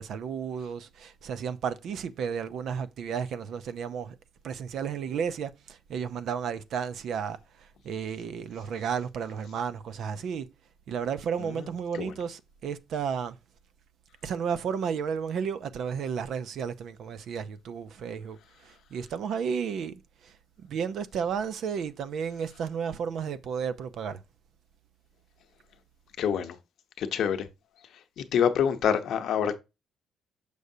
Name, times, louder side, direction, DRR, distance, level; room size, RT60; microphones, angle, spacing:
voice 1, 0.0-4.2 4.4-10.5 10.9-13.4 14.2-20.4 20.6-24.2, right 7 dB, 70° right, 0.5 m, -33 dB
voice 2, 26.2-26.6 27.0-27.5 28.2-29.6, left 8 dB, 75° left, 0.8 m, -26 dB
6.7 x 6.3 x 2.7 m
cardioid pair, 90°, 0 cm